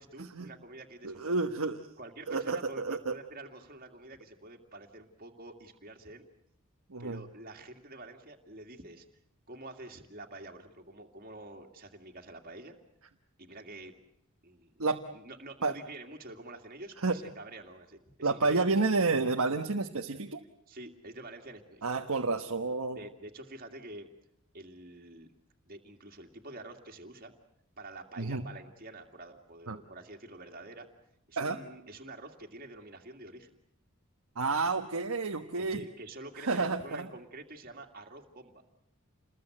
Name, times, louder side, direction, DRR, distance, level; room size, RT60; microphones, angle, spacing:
voice 1, 0.0-1.5 2.0-6.3 7.0-9.1 9.5-12.8 13.4-13.9 14.4-14.7 15.1-18.8 20.7-21.9 22.9-24.1 24.5-25.3 25.7-27.3 27.8-30.9 31.3-33.6 35.6-38.6, right 2 dB, 40° right, 3 dB, 2.4 m, -47 dB
voice 2, 1.0-1.9 2.3-3.1 6.9-7.2 14.8-15.0 15.6-15.7 17.0-17.2 18.2-20.4 21.8-23.0 28.2-28.4 29.7-29.8 31.4-31.6 34.4-35.8 36.4-37.1, right 3 dB, 90° right, 4 dB, 1.3 m, -30 dB
28.5 x 21.0 x 7.9 m, 0.77 s
head